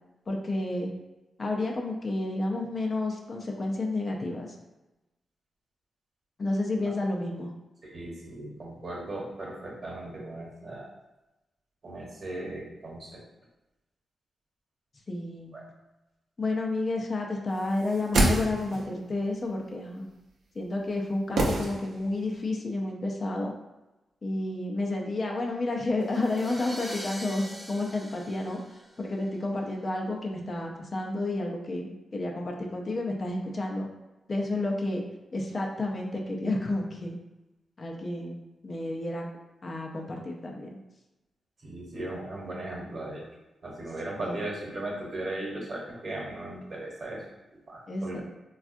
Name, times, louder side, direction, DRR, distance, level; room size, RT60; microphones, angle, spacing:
voice 1, 0.3-0.9 1.4-4.6 6.4-7.5 15.1-15.5 16.4-20.1 20.5-23.5 24.2-33.9 34.3-35.0 35.3-37.2 37.8-39.3 39.6-40.7 44.2-44.4 47.9-48.2, left 2 dB, 50° left, 0 dB, 0.5 m, -31 dB
voice 2, 7.8-10.9 11.8-13.2 15.5-15.6 41.6-43.2 43.6-47.2 47.7-48.2, right 2 dB, 60° right, -3 dB, 1.0 m, -37 dB
sound 1, 17.8-19.0 21.4-22.3 22.5-22.6, right 2 dB, 80° right, 0.6 m, -27 dB
sound 2, 26.0-29.3, equal, 5° right, 0.7 m, -42 dB
3.4 x 2.3 x 2.5 m, 1.0 s
cardioid pair, 50°, 0 cm